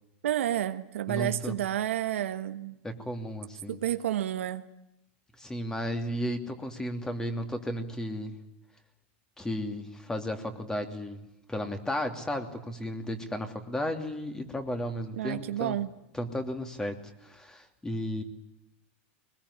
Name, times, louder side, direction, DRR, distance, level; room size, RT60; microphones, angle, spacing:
voice 1, 0.2-2.8 3.7-4.7 15.1-15.9, right 12 dB, 90° right, 8 dB, 1.4 m, -30 dB
voice 2, 1.1-1.5 2.8-3.8 5.4-8.4 9.4-11.2 11.5-15.8 16.1-17.0 17.2-18.2, equal, 10° left, 7 dB, 2.9 m, -34 dB
22.5 x 21.0 x 9.9 m, 0.88 s
supercardioid pair, 130°, 7 cm